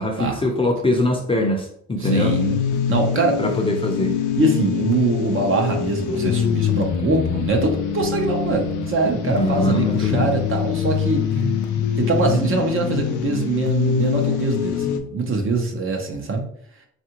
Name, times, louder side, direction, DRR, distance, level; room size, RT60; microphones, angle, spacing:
voice 1, 0.0-2.4 3.4-4.1 9.2-10.3 11.3-11.8, left 1 dB, 20° left, 1 dB, 0.5 m, -23 dB
sound 1, 2.0-15.0, left 7 dB, 80° left, 0.5 m, -24 dB
voice 2, 2.0-2.6 2.9-3.4 4.4-11.4 12.0-16.4, right 3 dB, 45° right, 2 dB, 0.8 m, -23 dB
3.3 x 2.5 x 2.9 m, 0.64 s
cardioid pair, 90°, 30 cm